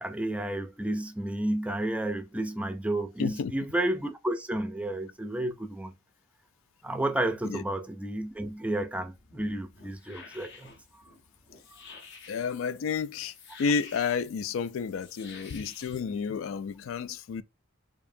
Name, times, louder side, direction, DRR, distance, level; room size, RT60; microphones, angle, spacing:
voice 1, 0.0-5.9 6.8-10.7, right 1 dB, 5° right, 0.4 m, -31 dB
voice 2, 3.2-3.5 7.5-7.6 12.3-13.3 13.6-17.4, left 5 dB, 75° left, 0.3 m, -31 dB
sound 1, 9.1-16.0, left 5 dB, 60° left, 0.9 m, -50 dB
4.6 x 2.7 x 2.6 m
head